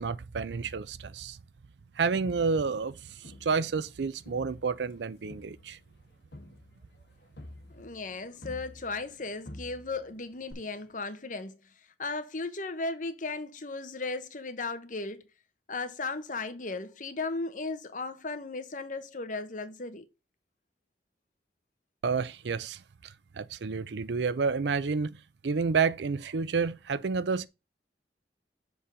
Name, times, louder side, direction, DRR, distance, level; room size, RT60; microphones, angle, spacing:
voice 1, 0.0-1.4 2.0-5.8 22.0-25.2 25.4-27.5, right 5 dB, 80° right, 0.5 m, -30 dB
Crowd, 2.1-3.9 4.3-9.2 9.4-10.1 10.5-10.6, left 1 dB, 75° left, 2.0 m, -49 dB
voice 2, 7.7-11.6 12.0-15.2 15.7-20.1, left 3 dB, 45° left, 1.0 m, -36 dB
7.0 x 3.8 x 5.6 m
head